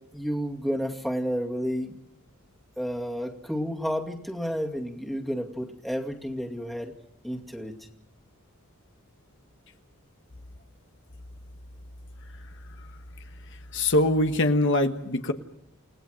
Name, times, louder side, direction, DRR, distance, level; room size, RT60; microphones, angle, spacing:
voice 1, 0.1-2.0 2.8-6.9 7.2-7.8, equal, ahead, 1 dB, 2.3 m, -31 dB
voice 2, 13.7-15.3, left 1 dB, 55° left, 6 dB, 1.4 m, -23 dB
29.5 x 18.0 x 6.4 m, 0.74 s
head